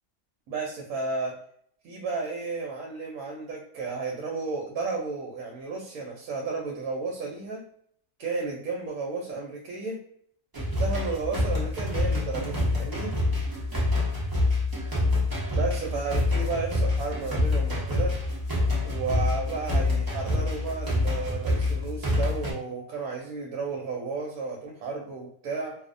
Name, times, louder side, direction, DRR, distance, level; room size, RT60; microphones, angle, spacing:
voice 1, 0.5-1.4 1.8-7.6 8.2-10.0 10.5-13.1 15.5-18.2 18.8-25.8, right 4 dB, 75° right, -1 dB, 1.0 m, -33 dB
sound 1, 10.5-22.5, left 2 dB, 35° right, 0.3 m, -26 dB
2.5 x 2.0 x 2.5 m, 0.65 s
omnidirectional pair, 1.6 m